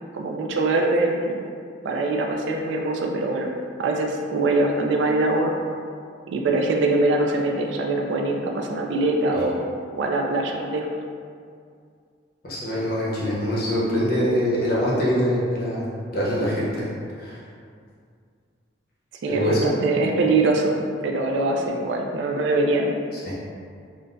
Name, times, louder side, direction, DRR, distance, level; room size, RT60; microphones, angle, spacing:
voice 1, 0.1-1.5 1.8-3.5 3.8-5.5 6.3-9.6 9.9-10.9 19.2-20.8 21.0-22.9, right 2 dB, 70° right, 1 dB, 0.3 m, -23 dB
voice 2, 12.4-15.8 16.1-16.9 17.2-17.4 19.3-19.7 23.2-23.4, equal, 50° left, -7 dB, 0.8 m, -24 dB
3.7 x 2.1 x 2.5 m, 2.2 s
head